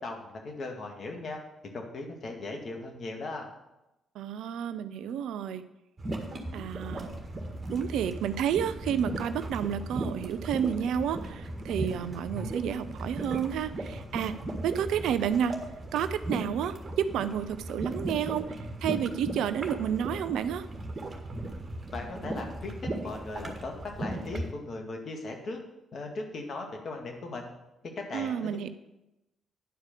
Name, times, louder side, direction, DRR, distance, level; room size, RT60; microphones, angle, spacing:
voice 1, 0.0-1.4 1.7-3.5 21.9-25.6 25.9-27.5 27.8-28.7, left 3 dB, 55° left, 2 dB, 2.0 m, -38 dB
voice 2, 4.2-5.7 6.5-7.1 7.7-14.4 14.6-15.6 15.9-20.7 28.1-28.7, right 8 dB, 75° right, 12 dB, 0.5 m, -30 dB
sound 1, 6.0-24.5, right 1 dB, 40° right, 1.7 m, -37 dB
10.0 x 4.8 x 6.6 m, 0.95 s
hypercardioid pair, 50°, 0 cm